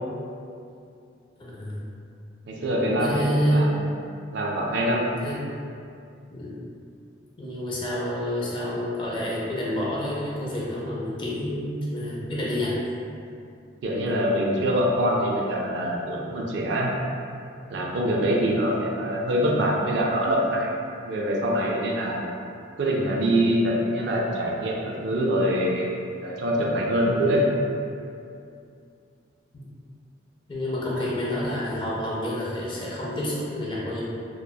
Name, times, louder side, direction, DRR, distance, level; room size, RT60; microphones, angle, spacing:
voice 1, 1.4-1.8 3.0-3.7 5.2-5.4 6.3-6.6 7.4-12.8 29.5-29.6 30.5-34.0, equal, 25° left, -6 dB, 0.4 m, -28 dB
voice 2, 2.5-3.7 4.3-5.1 13.8-16.9 17.7-20.7 21.0-22.2 22.8-25.9 26.2-27.5 31.0-31.1, equal, 60° right, -1 dB, 0.3 m, -24 dB
2.6 x 2.1 x 2.2 m, 2.5 s
head